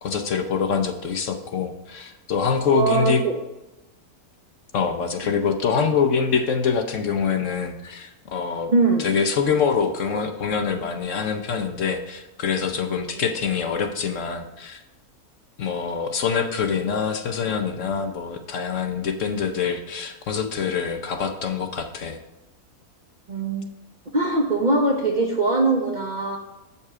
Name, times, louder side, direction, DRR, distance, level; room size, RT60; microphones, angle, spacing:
voice 1, 0.0-3.2 4.7-8.7 9.0-14.8 15.6-22.2, left 6 dB, 60° left, 6 dB, 0.9 m, -25 dB
voice 2, 2.7-3.4 5.8-5.9 8.7-9.1 23.3-23.7 24.1-26.4, right 3 dB, 40° right, 1 dB, 0.7 m, -21 dB
7.8 x 5.6 x 4.7 m, 1.0 s
omnidirectional pair, 1.6 m